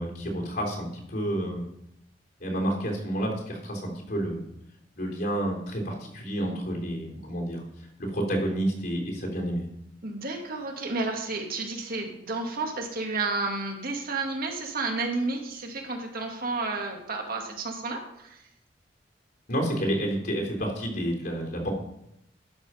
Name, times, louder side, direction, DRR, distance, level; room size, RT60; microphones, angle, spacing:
voice 1, 0.0-1.7 2.4-4.4 4.9-7.6 8.0-9.7 19.5-21.7, right 1 dB, 60° left, 0 dB, 3.2 m, -30 dB
voice 2, 10.0-18.4, right 3 dB, 55° right, 3 dB, 1.7 m, -31 dB
12.5 x 5.8 x 5.5 m, 0.79 s
head